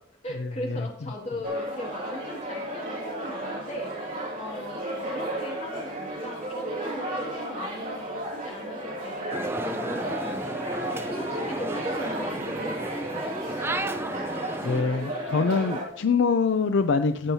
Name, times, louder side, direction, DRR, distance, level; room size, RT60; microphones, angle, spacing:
voice 1, 0.2-10.6 10.9-13.6 14.1-14.2, left 1 dB, 30° left, -1 dB, 2.0 m, -39 dB
sound 1, 1.4-15.9, right 1 dB, 40° right, 2.5 m, -33 dB
sound 2, 9.3-14.8, right 1 dB, 10° right, 0.4 m, -33 dB
voice 2, 14.6-17.3, left 4 dB, 65° left, 9 dB, 0.4 m, -24 dB
17.0 x 7.1 x 2.8 m, 0.68 s
head